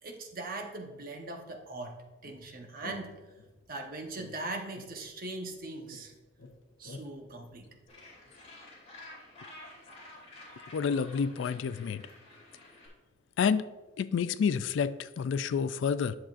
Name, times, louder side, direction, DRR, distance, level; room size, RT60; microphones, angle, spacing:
voice 1, 0.0-3.1 3.7-6.1 6.8-7.8, right 2 dB, 45° right, 3 dB, 1.0 m, -40 dB
sound 1, 2.2-3.7 4.2-5.6 5.9-8.4, left 3 dB, 85° left, 0.8 m, -52 dB
Gull seagull, 7.9-12.9, left 1 dB, 35° left, 2.5 m, -51 dB
voice 2, 10.7-12.0 13.4-13.6 14.0-16.2, left 6 dB, 70° left, 15 dB, 0.3 m, -29 dB
10.5 x 7.2 x 2.5 m, 1.2 s
head